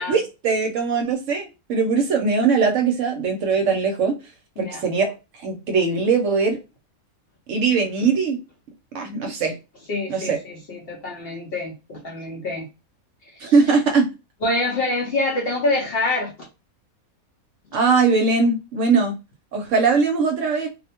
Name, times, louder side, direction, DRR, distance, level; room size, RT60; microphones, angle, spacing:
voice 1, 0.0-4.2 4.6-5.1 5.4-6.6 7.5-8.4 8.9-9.5 10.1-10.4 13.5-14.1 17.7-19.1 19.5-20.7, right 4 dB, 65° right, 0.9 m, -20 dB
voice 2, 9.9-12.7 13.3-13.5 14.4-16.5, left 2 dB, 55° left, 0.6 m, -26 dB
2.5 x 2.1 x 2.8 m
omnidirectional pair, 1.5 m